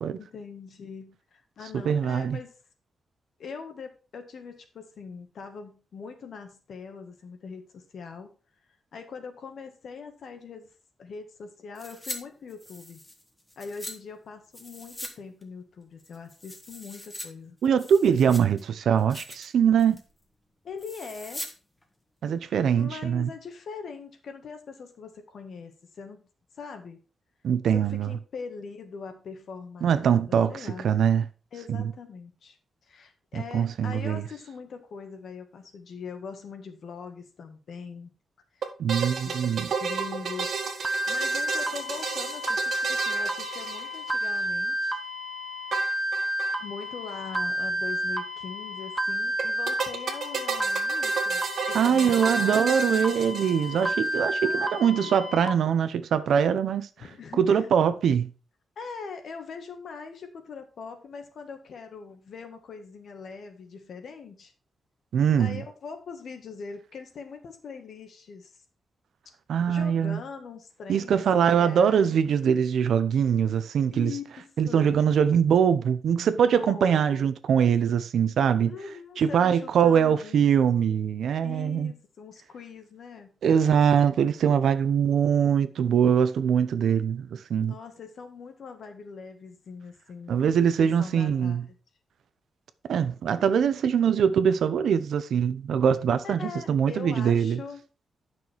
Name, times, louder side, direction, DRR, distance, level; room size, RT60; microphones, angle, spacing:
voice 1, 0.1-2.5 3.4-8.3 8.9-10.7 11.0-13.0 13.6-17.6 20.6-21.4 22.8-26.2 26.5-27.0 27.7-30.9 31.5-32.6 32.8-38.1 38.5-38.6 39.2-45.0 46.6-51.4 51.7-53.3 54.4-55.2 57.0-57.7 58.7-64.5 65.4-68.5 69.7-72.2 73.9-75.0 76.5-77.3 78.6-80.9 81.4-83.4 87.6-90.4 90.8-91.7 96.2-97.8, left 5 dB, 60° left, 1.7 m, -42 dB
voice 2, 1.8-2.4 17.6-20.0 22.2-23.3 27.4-28.1 29.8-30.5 30.8-31.2 31.7-31.9 33.3-34.2 38.8-39.7 51.7-56.9 57.4-58.3 65.1-65.6 69.5-70.2 70.9-74.1 74.6-78.7 79.2-81.9 83.4-87.7 90.3-91.6 92.9-97.6, right 8 dB, 85° right, 0.8 m, -23 dB
sound 1, 11.7-12.2 12.5-13.9 14.5-15.1 15.4-15.5 16.0-17.3 17.6-18.6 19.0-19.5 19.8-20.1 20.8-21.5 21.8-21.9, left 1 dB, 10° left, 1.4 m, -41 dB
sound 2, 38.6-44.4 45.7-46.6 46.8-46.9 47.1-47.2 49.4-53.9, right 5 dB, 65° right, 1.7 m, -33 dB
sound 3, 40.8-55.5, right 1 dB, 15° right, 0.9 m, -30 dB
9.7 x 6.1 x 4.6 m
wide cardioid pair, 155°, 0 cm